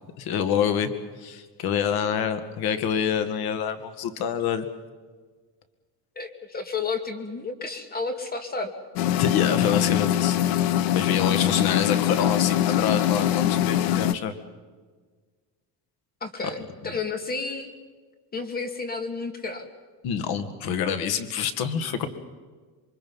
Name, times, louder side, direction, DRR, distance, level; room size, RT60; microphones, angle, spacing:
voice 1, 0.2-0.9 1.2-4.7 9.2-10.4 10.9-14.3 20.0-22.1, left 8 dB, 60° left, 10 dB, 2.3 m, -26 dB
voice 2, 6.2-8.7 11.3-11.4 16.2-17.7 18.3-19.7, left 4 dB, 20° left, 8 dB, 2.4 m, -31 dB
sound 1, 9.0-14.1, left 12 dB, 90° left, 1.2 m, -23 dB
28.0 x 23.5 x 5.6 m, 1.5 s
cardioid pair, 150°, 41 cm